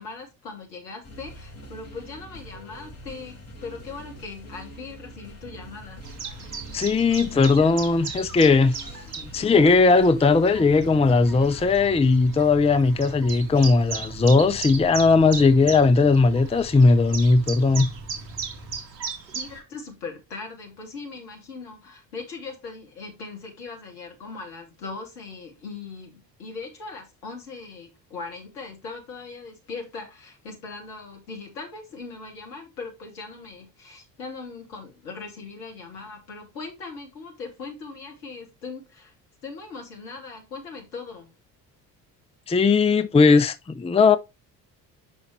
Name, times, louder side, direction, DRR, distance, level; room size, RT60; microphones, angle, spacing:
voice 1, 0.0-6.0 19.3-39.1 39.4-41.3, left 4 dB, 75° left, 2.8 m, -39 dB
sound 1, 1.0-11.8, equal, 30° left, 4.0 m, -44 dB
Chirp tweet, 6.0-19.6, right 5 dB, 75° right, 1.5 m, -37 dB
voice 2, 6.7-8.8 9.3-17.9 42.5-44.2, left 4 dB, 10° left, 0.7 m, -18 dB
sound 2, 10.5-18.8, right 1 dB, 30° right, 3.0 m, -43 dB
9.4 x 5.6 x 3.1 m
figure-of-eight pair, 50°, 50 cm